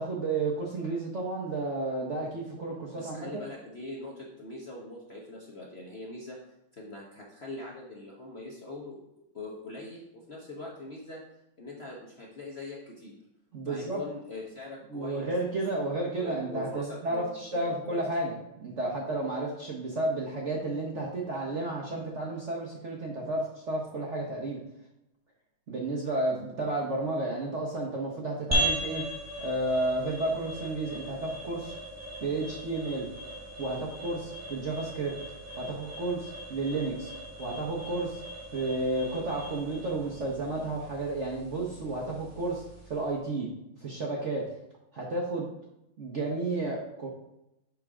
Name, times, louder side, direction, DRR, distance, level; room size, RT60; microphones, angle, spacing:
voice 1, 0.0-3.3 13.5-14.0 14.9-18.3 18.6-24.6 25.7-29.0 29.4-31.7 32.2-33.1 33.6-35.2 35.6-37.1 37.4-38.2 38.5-43.5 43.8-44.4 44.9-45.5 46.0-47.1, right 2 dB, 50° right, -2 dB, 0.9 m, -32 dB
voice 2, 2.9-6.4 6.7-9.0 9.3-11.2 11.6-13.1 13.6-15.3 16.2-18.0, left 2 dB, 50° left, -3 dB, 0.7 m, -42 dB
sound 1, 28.5-43.1, equal, 10° right, 1.1 m, -38 dB
6.6 x 3.8 x 4.8 m, 0.87 s
omnidirectional pair, 2.3 m